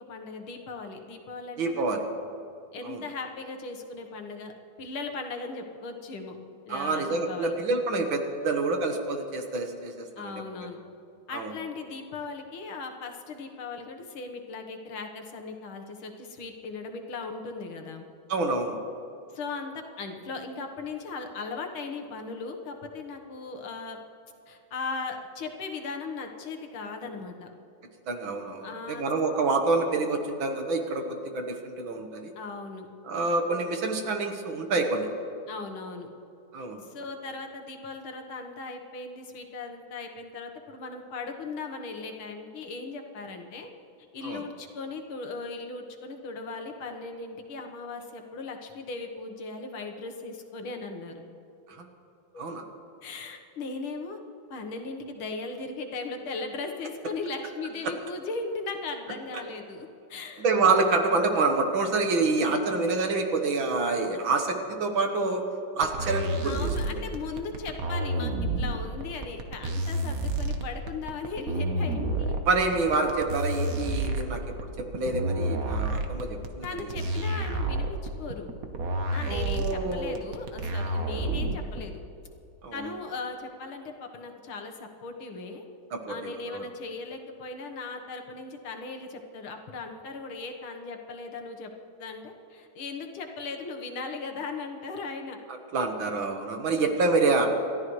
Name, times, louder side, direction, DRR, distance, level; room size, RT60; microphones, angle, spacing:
voice 1, 0.0-2.0 2.7-4.5 4.8-6.4 6.7-7.6 10.2-10.8 11.3-18.0 19.3-24.0 24.5-27.5 28.6-29.0 32.4-32.9 35.5-36.1 36.8-43.7 44.1-51.1 52.3-52.5 53.0-54.2 54.5-60.5 66.4-72.4 76.6-78.5 79.1-82.0 82.7-85.6 86.1-91.7 92.0-95.4, left 3 dB, 75° left, 4 dB, 2.1 m, -38 dB
voice 2, 1.6-2.1 2.8-3.0 6.7-10.3 11.3-11.5 18.3-18.8 28.1-32.3 33.0-35.1 36.5-36.8 44.2-44.4 51.7-51.8 52.4-52.6 60.4-65.4 65.8-66.7 66.9-67.0 72.5-76.7 79.3-80.1 82.6-82.8 85.9-86.6 95.7-97.5, right 3 dB, 65° right, 4 dB, 2.1 m, -27 dB
sound 1, 65.8-81.8, right 1 dB, 50° right, 1.3 m, -29 dB
29.5 x 13.5 x 3.2 m, 2.7 s
omnidirectional pair, 2.4 m